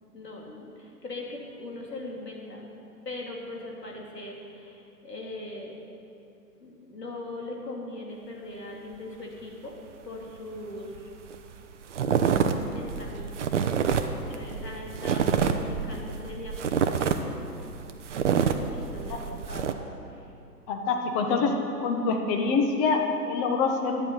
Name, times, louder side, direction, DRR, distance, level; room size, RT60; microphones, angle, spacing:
voice 1, 0.1-2.7 3.0-5.7 6.6-9.8 10.0-11.1 12.7-13.5 14.3-16.9 18.3-19.8 20.1-20.3, left 2 dB, 80° left, -1 dB, 2.8 m, -40 dB
sound 1, 11.0-11.1 11.3-11.6 11.9-19.7, right 7 dB, 50° right, 0.8 m, -27 dB
voice 2, 20.7-21.5 21.8-24.0, left 4 dB, 20° left, 3 dB, 1.1 m, -25 dB
11.0 x 9.3 x 5.6 m, 2.7 s
figure-of-eight pair, 125°, 48 cm